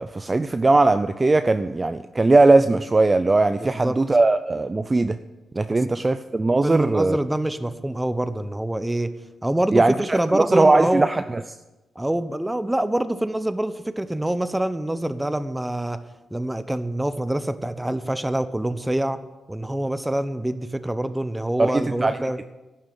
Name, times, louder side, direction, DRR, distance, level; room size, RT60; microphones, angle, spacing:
voice 1, 0.0-5.2 5.5-7.2 9.7-11.4 21.6-22.4, right 2 dB, 30° right, 10 dB, 0.5 m, -19 dB
voice 2, 3.6-4.0 6.6-9.1 9.4-11.1 11.9-16.0 16.3-19.2 19.5-22.4, right 1 dB, 10° right, 12 dB, 0.9 m, -25 dB
11.0 x 7.3 x 9.0 m, 1.1 s
cardioid pair, 70°, 0 cm